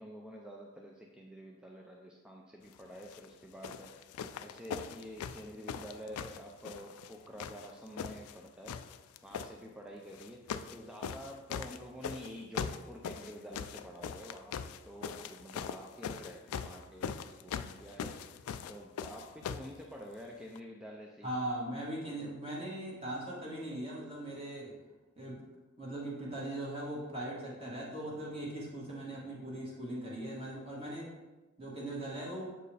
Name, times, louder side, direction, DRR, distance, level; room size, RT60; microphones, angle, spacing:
voice 1, 0.0-4.1 4.4-10.4 10.7-14.5 14.9-18.3 18.7-21.3, equal, 5° right, -1 dB, 0.4 m, -48 dB
sound 1, 3.0-3.2 3.6-7.1 7.4-8.4 8.6-9.5 10.1-10.8 11.0-19.7 20.5-20.6, left 7 dB, 80° left, 0.3 m, -41 dB
voice 2, 21.2-24.7 25.2-25.4 25.8-31.1 31.6-32.5, right 1 dB, 25° right, -5 dB, 1.6 m, -39 dB
7.3 x 4.5 x 3.3 m, 1.1 s
head